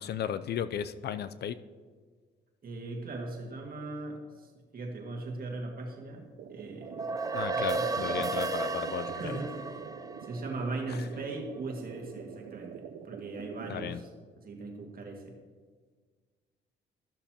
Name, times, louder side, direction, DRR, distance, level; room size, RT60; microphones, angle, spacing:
voice 1, 0.0-1.6 7.3-9.4 10.9-11.0 13.7-14.0, left 9 dB, 55° left, 13 dB, 0.4 m, -35 dB
voice 2, 2.6-7.1 7.8-8.3 9.1-9.7 10.2-14.1 14.4-15.3, right 2 dB, 45° right, 1 dB, 1.8 m, -39 dB
sound 1, 6.4-13.9, right 7 dB, 85° right, 0.6 m, -46 dB
sound 2, 6.8-11.4, right 3 dB, 20° right, 0.5 m, -34 dB
13.5 x 6.7 x 2.9 m, 1.5 s
cardioid pair, 90°, 20 cm